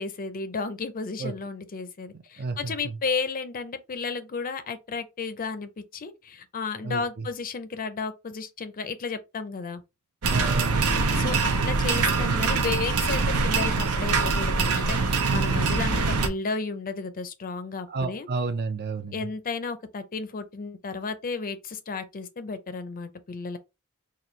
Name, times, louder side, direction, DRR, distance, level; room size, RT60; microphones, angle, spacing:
voice 1, 0.0-9.8 11.1-18.3 19.1-23.6, left 4 dB, 40° left, 0.5 m, -33 dB
voice 2, 2.4-3.0 6.8-7.3 10.3-10.9 17.9-19.3, right 4 dB, 45° right, 0.6 m, -31 dB
sound 1, 10.2-16.3, right 4 dB, 80° right, 0.8 m, -24 dB
4.2 x 2.5 x 3.1 m
head